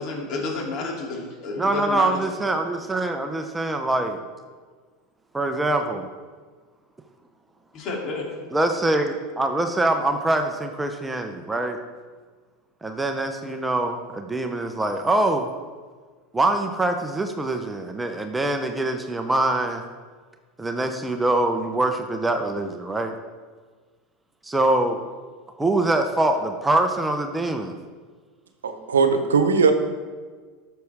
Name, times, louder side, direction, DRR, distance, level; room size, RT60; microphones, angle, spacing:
voice 1, 0.0-2.1 7.7-8.3, left 3 dB, 45° left, -2 dB, 2.9 m, -30 dB
voice 2, 1.6-4.2 5.3-6.1 8.5-11.8 12.8-15.5 16.3-19.8 20.6-23.1 24.4-25.0 25.6-27.7, right 2 dB, 10° right, 5 dB, 0.8 m, -24 dB
voice 3, 28.6-29.7, right 5 dB, 85° right, 8 dB, 0.9 m, -19 dB
13.5 x 6.5 x 3.6 m, 1.5 s
hypercardioid pair, 85°, 0 cm